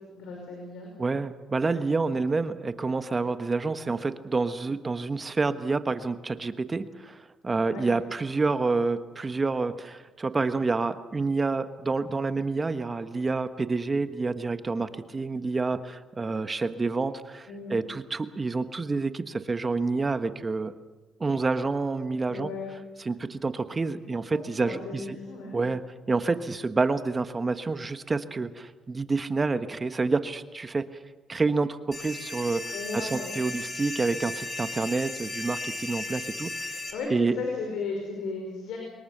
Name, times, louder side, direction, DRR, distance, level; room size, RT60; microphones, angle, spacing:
voice 1, 0.1-0.9 7.7-7.8 17.5-17.7 22.3-22.7 24.3-25.6 32.7-33.3 36.9-38.8, left 4 dB, 85° left, 1 dB, 5.4 m, -35 dB
voice 2, 1.0-20.7 21.2-22.5 23.0-25.2 25.5-25.8 26.1-30.8 31.3-36.5 37.1-37.3, right 3 dB, 30° right, 10 dB, 1.3 m, -28 dB
sound 1, 31.9-36.9, left 2 dB, 25° left, 5.4 m, -36 dB
25.0 x 21.5 x 6.7 m, 1.2 s
cardioid pair, 90°, 0 cm